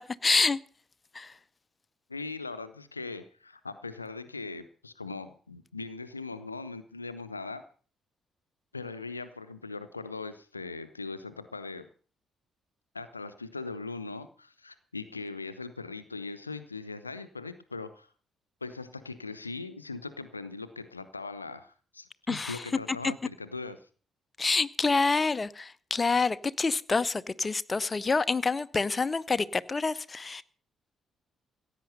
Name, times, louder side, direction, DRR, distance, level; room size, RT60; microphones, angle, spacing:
voice 1, 0.2-0.6 1.2-1.3 22.3-22.6 24.4-30.4, left 4 dB, 30° left, 0.7 m, -27 dB
voice 2, 2.1-7.6 8.7-11.9 12.9-18.1 18.6-23.8, left 3 dB, 85° left, 0.6 m, -40 dB
16.0 x 8.9 x 6.6 m
figure-of-eight pair, 40°, 0 cm